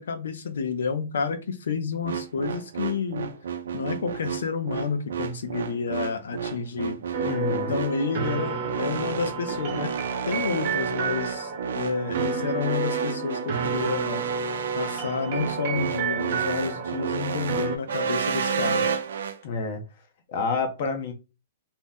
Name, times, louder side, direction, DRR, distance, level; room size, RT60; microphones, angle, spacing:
voice 1, 0.0-3.3 3.7-7.0 7.5-9.9 10.3-14.2 14.7-18.9, left 5 dB, 90° left, 0.6 m, -30 dB
sound 1, 2.0-19.4, right 6 dB, 85° right, 0.5 m, -31 dB
sound 2, 7.1-17.8, right 5 dB, 45° right, 0.9 m, -31 dB
voice 2, 7.2-7.7 19.4-19.8 20.3-21.1, left 4 dB, 50° left, 0.7 m, -28 dB
2.7 x 2.1 x 3.5 m
hypercardioid pair, 160°, 0 cm